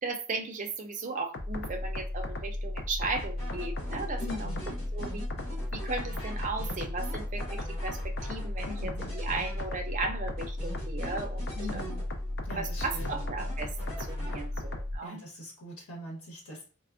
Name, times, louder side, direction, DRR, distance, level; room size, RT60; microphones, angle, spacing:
voice 1, 0.0-4.5 4.9-5.3 5.7-11.8 12.6-15.2, right 3 dB, 35° right, 4 dB, 0.4 m, -36 dB
sound 1, 1.3-15.0, left 1 dB, 55° left, 0.4 m, -35 dB
sound 2, 3.2-10.0 10.4-12.4 12.8-14.8, equal, 30° left, 1.1 m, -45 dB
voice 2, 4.2-4.7 8.6-9.2 11.6-12.0 12.4-13.2 15.0-16.7, left 1 dB, 85° left, -2 dB, 1.0 m, -42 dB
3.3 x 2.0 x 2.4 m, 0.35 s
head